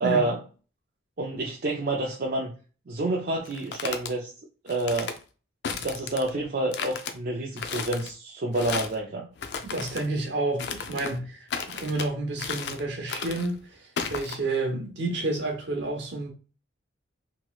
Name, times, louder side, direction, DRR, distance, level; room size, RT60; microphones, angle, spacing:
voice 1, 0.0-0.4 1.2-2.5 2.9-4.3 4.6-5.2 5.7-9.3, right 2 dB, 50° right, 0.4 m, -28 dB
sound 1, 3.5-4.1 4.7-5.2 5.6-6.3 6.7-7.1 7.6-8.1 8.5-9.0 9.4-10.1 10.6-11.2 11.5-12.1 12.4-12.8 13.1-13.5 14.0-14.4, left 6 dB, 55° left, 0.4 m, -34 dB
voice 2, 9.6-16.3, right 2 dB, 65° right, 1.0 m, -30 dB
3.0 x 2.9 x 2.3 m
head